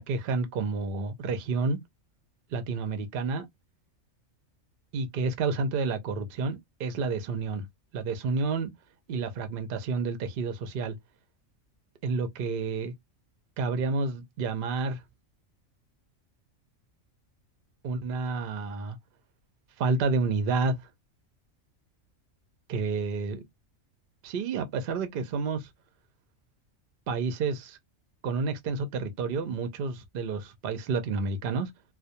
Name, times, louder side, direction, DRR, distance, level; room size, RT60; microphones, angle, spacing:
voice 1, 0.0-1.8 2.5-3.5 4.9-7.7 7.9-8.7 9.1-11.0 12.0-12.9 13.6-15.0 17.8-19.0 19.8-20.8 22.7-23.4 24.2-25.7 27.1-27.8 28.2-31.7, right 4 dB, 60° right, 0.6 m, -30 dB
2.2 x 2.1 x 2.7 m
omnidirectional pair, 1.4 m